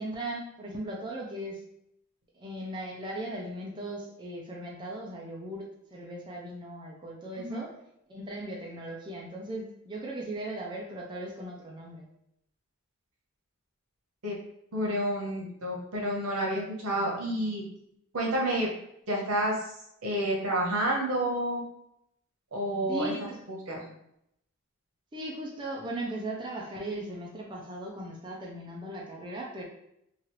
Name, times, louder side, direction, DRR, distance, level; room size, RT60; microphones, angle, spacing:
voice 1, 0.0-1.6 2.4-5.7 5.9-7.7 8.1-12.1 22.9-23.4 25.1-29.6, right 1 dB, 20° right, -2 dB, 0.4 m, -38 dB
voice 2, 7.3-7.7 14.2-14.4 14.7-17.6 18.1-18.7 19.1-19.6 20.0-21.6 22.5-23.1 23.5-23.8, right 1 dB, 90° right, -2 dB, 1.0 m, -29 dB
3.0 x 2.4 x 3.0 m, 0.77 s
head